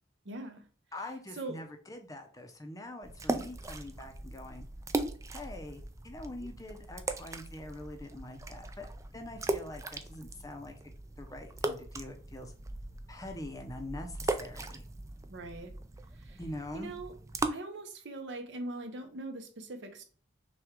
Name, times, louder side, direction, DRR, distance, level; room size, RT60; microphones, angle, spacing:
voice 1, 0.2-0.6 1.3-1.6 15.3-15.7 16.1-16.4 16.7-17.1 17.5-20.0, right 2 dB, 70° right, 6 dB, 0.8 m, -41 dB
voice 2, 0.9-4.6 5.3-12.5 13.1-14.8 16.4-16.9, left 1 dB, 20° left, 4 dB, 0.6 m, -44 dB
sound 1, 3.0-17.5, right 2 dB, 15° right, 0.3 m, -39 dB
5.8 x 2.3 x 3.6 m, 0.42 s
head